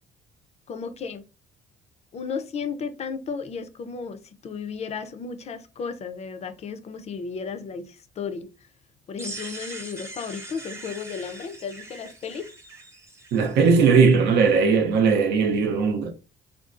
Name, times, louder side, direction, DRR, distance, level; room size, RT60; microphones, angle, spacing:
voice 1, 0.7-1.2 2.1-8.5 9.1-12.5, left 5 dB, 40° left, 0.5 m, -34 dB
sound 1, 9.2-14.0, right 2 dB, 15° right, 0.8 m, -41 dB
voice 2, 13.3-16.1, right 5 dB, 75° right, 0.7 m, -19 dB
3.7 x 2.3 x 2.5 m
cardioid pair, 110°, 17 cm